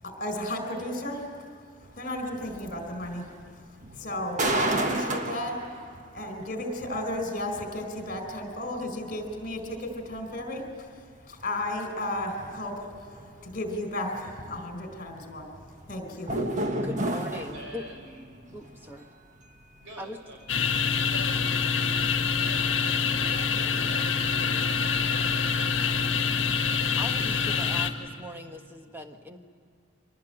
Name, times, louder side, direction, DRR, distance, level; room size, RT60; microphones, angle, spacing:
voice 1, 0.0-1.4 1.9-3.3 3.9-5.5 6.1-10.9 11.3-15.4 15.9-16.4, left 1 dB, 40° left, 5 dB, 4.5 m, -34 dB
sound 1, 1.8-1.9 2.3-3.5 3.8-6.0 6.5-6.6 7.0-7.2 7.5-7.6 8.0-8.1 8.5-8.6 9.0-10.2 10.6-10.7 11.1-11.2 11.7-11.8 12.0-12.3 12.7-12.8 13.1-13.5 13.7-13.8 14.2-14.3 14.8-14.9 15.2-15.5 15.8-15.9 16.3-18.1 18.4-19.1 19.4-19.6 19.9-20.1 20.4-20.6, right 1 dB, 35° right, 1.5 m, -31 dB
voice 2, 16.8-17.9 18.5-19.1 20.0-20.2 27.0-29.4, left 1 dB, 10° right, 5 dB, 1.3 m, -40 dB
voice 3, 17.5-18.6 19.8-20.4 21.1-21.5 22.1-22.7 23.1-24.1 24.3-24.8, equal, 65° right, 1 dB, 7.1 m, -46 dB
sound 2, 20.5-27.9, left 6 dB, 65° left, 1.6 m, -26 dB
24.5 x 19.5 x 8.9 m, 2.1 s
head